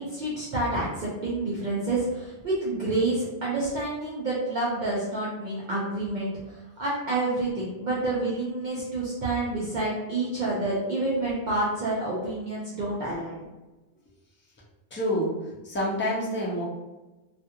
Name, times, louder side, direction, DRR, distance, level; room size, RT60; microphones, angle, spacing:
voice 1, 0.0-13.5, right 2 dB, 50° right, -7 dB, 0.6 m, -28 dB
voice 2, 14.9-15.3 15.6-16.6, equal, 20° left, -5 dB, 0.3 m, -27 dB
2.4 x 2.4 x 2.8 m, 1.1 s
omnidirectional pair, 1.2 m